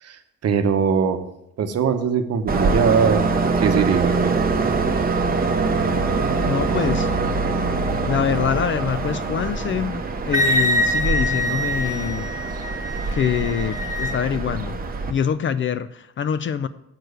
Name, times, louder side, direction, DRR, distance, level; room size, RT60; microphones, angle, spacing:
voice 1, 0.0-1.2 1.6-3.2 3.6-4.3, right 6 dB, 55° right, 0.9 m, -21 dB
Train, 2.5-15.1, right 3 dB, 30° right, 0.9 m, -24 dB
voice 2, 6.4-7.1 8.1-12.3 13.1-14.8 15.1-16.7, left 8 dB, 40° left, 0.4 m, -25 dB
Wind instrument woodwind instrument, 10.3-14.2, left 1 dB, 10° right, 1.4 m, -24 dB
7.7 x 4.6 x 6.5 m
cardioid pair, 90°, 30 cm